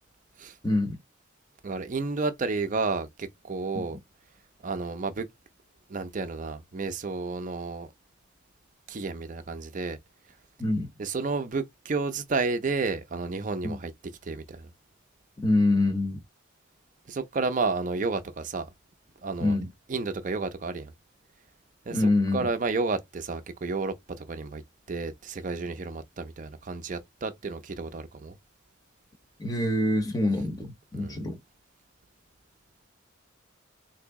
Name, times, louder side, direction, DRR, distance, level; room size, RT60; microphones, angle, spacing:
voice 1, 0.6-1.0 3.7-4.0 10.6-10.9 13.6-13.8 15.4-16.2 19.4-19.7 21.9-22.5 29.4-31.4, left 1 dB, 20° left, 0.7 m, -25 dB
voice 2, 1.6-4.0 4.6-5.3 5.9-7.9 8.9-10.0 11.0-13.9 14.2-14.7 17.1-18.7 19.2-19.6 19.9-20.9 21.9-24.6 24.9-28.4 31.0-31.2, right 3 dB, 40° right, 0.5 m, -31 dB
2.9 x 2.6 x 3.5 m
head